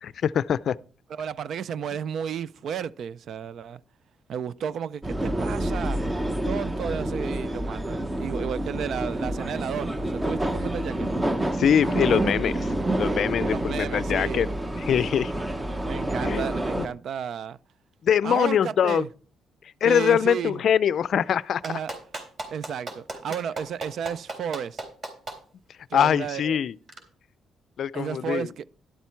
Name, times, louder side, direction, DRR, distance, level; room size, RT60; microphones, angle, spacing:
voice 1, 0.0-0.8 11.6-12.7 12.9-14.5 14.8-15.5 16.2-16.4 16.8-16.9 18.0-19.0 19.8-21.8 25.9-26.8 27.8-28.5, left 8 dB, 60° left, 0.4 m, -23 dB
voice 2, 1.1-3.8 4.3-6.0 6.5-11.1 13.4-14.5 15.8-17.6 18.2-19.1 19.8-20.6 21.6-21.9 22.5-24.8 25.9-26.6 27.9-28.6, right 8 dB, 65° right, 0.5 m, -33 dB
sound 1, 5.0-16.9, right 1 dB, 15° right, 0.9 m, -28 dB
Clapping, 21.6-25.4 26.9-27.0, right 2 dB, 45° right, 3.5 m, -35 dB
11.5 x 8.2 x 4.5 m
cardioid pair, 90°, 0 cm